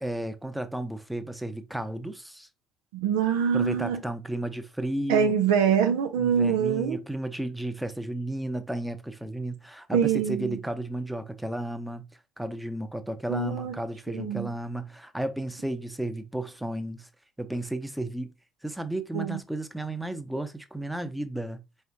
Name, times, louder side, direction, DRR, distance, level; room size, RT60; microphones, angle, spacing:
voice 1, 0.0-2.5 3.5-5.3 6.2-12.0 12.4-17.1 17.4-18.3 18.6-21.6, right 1 dB, 5° right, 0.8 m, -33 dB
voice 2, 2.9-4.0 5.1-7.0 9.9-10.6 13.3-13.8 14.1-14.5 19.1-19.4, right 7 dB, 70° right, 0.5 m, -24 dB
4.8 x 3.3 x 2.7 m
figure-of-eight pair, 50°, 0 cm